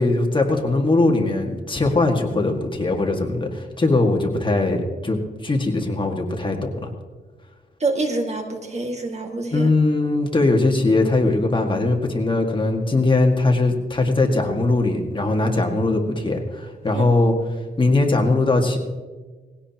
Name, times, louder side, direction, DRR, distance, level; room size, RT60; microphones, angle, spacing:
voice 1, 0.0-6.9 9.5-17.3 17.8-18.8, left 2 dB, 30° left, 2 dB, 1.9 m, -20 dB
voice 2, 7.8-9.7 16.9-17.0, right 3 dB, 40° right, 3 dB, 1.9 m, -26 dB
19.5 x 16.5 x 2.9 m, 1.4 s
wide cardioid pair, 105°, 18 cm